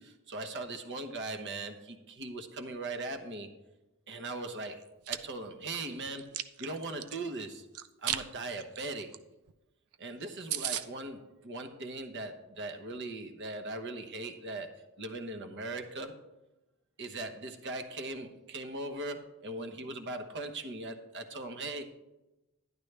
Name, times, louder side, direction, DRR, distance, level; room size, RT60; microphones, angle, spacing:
voice 1, 0.0-3.5 4.1-6.3 6.6-7.7 8.0-9.2 10.0-16.1 17.0-21.8, right 2 dB, 55° right, 6 dB, 1.1 m, -39 dB
Chewing mastication, 4.8-5.2 5.7-7.2 7.7-8.2 8.6-8.8 9.1-9.2 9.5-9.6 9.9-10.0 10.2-10.3 10.5-10.8, right 11 dB, 85° right, 0.5 m, -34 dB
11.0 x 11.0 x 3.4 m, 1.0 s
head